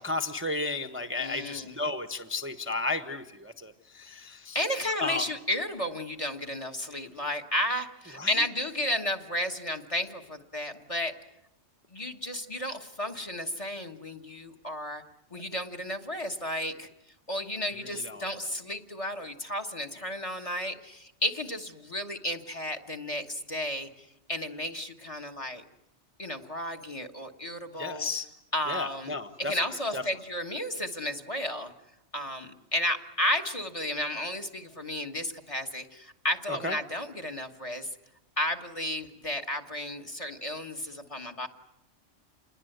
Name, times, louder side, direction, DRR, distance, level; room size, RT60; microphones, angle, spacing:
voice 1, 0.0-5.3 8.2-8.5 17.8-18.2 27.8-28.3 28.7-29.6 29.9-30.0 36.5-36.8, left 3 dB, 10° right, 5 dB, 0.9 m, -33 dB
voice 2, 1.2-1.7 4.5-11.1 11.9-15.0 15.3-16.9 17.3-23.9 24.3-25.6 26.2-28.1 28.5-29.1 29.4-31.7 32.1-37.9 38.4-41.5, left 1 dB, 30° left, 4 dB, 1.4 m, -33 dB
28.0 x 21.0 x 7.9 m, 0.88 s
omnidirectional pair, 1.3 m